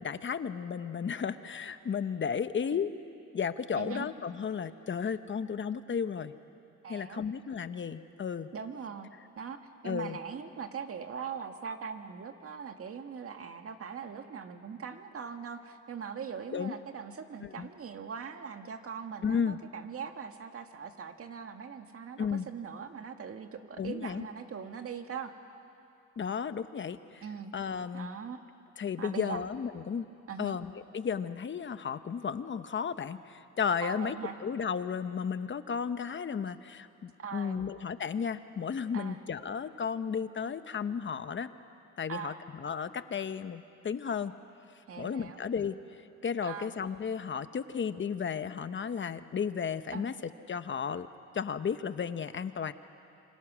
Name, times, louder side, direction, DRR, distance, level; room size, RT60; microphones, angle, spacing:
voice 1, 0.0-2.9 3.3-6.3 6.9-8.5 9.8-10.2 16.5-16.7 17.4-17.7 19.2-19.6 22.2-22.5 23.8-24.2 26.2-27.2 27.5-28.1 28.8-30.1 30.4-34.1 34.4-41.5 42.0-44.3 45.0-45.7 46.2-50.1 50.5-51.1 51.3-52.7, left 6 dB, 40° left, 11 dB, 1.0 m, -34 dB
voice 2, 3.7-4.1 6.8-7.2 8.5-9.1 9.4-9.6 9.8-25.3 27.2-27.5 27.9-28.4 29.0-29.5 30.3-30.6 33.8-34.4 37.2-37.7 38.9-39.2 42.1-42.4 44.9-45.4 46.4-46.7 49.9-50.1, right 6 dB, 50° right, 6 dB, 1.9 m, -41 dB
27.5 x 26.0 x 6.3 m, 2.6 s
cardioid pair, 90°, 30 cm